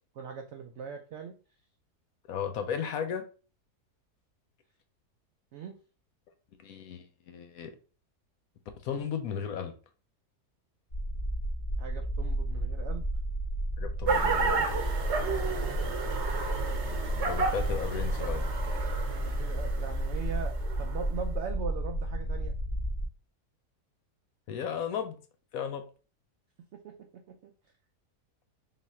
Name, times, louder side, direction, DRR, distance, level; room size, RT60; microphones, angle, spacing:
voice 1, 0.2-1.3 5.5-5.8 11.8-13.1 15.5-16.0 18.8-22.5 26.7-26.9 27.3-27.5, right 6 dB, 80° right, 4 dB, 0.6 m, -40 dB
voice 2, 2.3-3.3 6.6-7.7 8.8-9.7 13.8-14.7 17.3-18.5 24.5-25.2 25.5-25.8, left 7 dB, 70° left, 6 dB, 1.0 m, -35 dB
sound 1, 10.9-23.1, right 1 dB, 35° left, 0.9 m, -32 dB
sound 2, 14.1-21.1, right 4 dB, 55° right, 0.9 m, -32 dB
3.9 x 2.4 x 4.1 m, 0.36 s
omnidirectional pair, 1.7 m